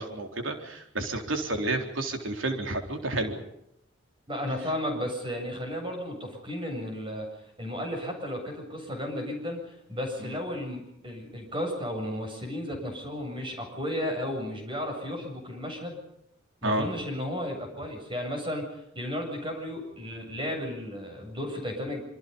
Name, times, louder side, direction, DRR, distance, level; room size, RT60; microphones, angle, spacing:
voice 1, 0.0-3.4 16.6-16.9, right 2 dB, 75° right, 4 dB, 3.9 m, -30 dB
voice 2, 4.3-7.3 7.6-16.0 16.6-22.0, left 1 dB, 25° right, 3 dB, 7.7 m, -34 dB
27.5 x 26.0 x 5.4 m, 0.77 s
head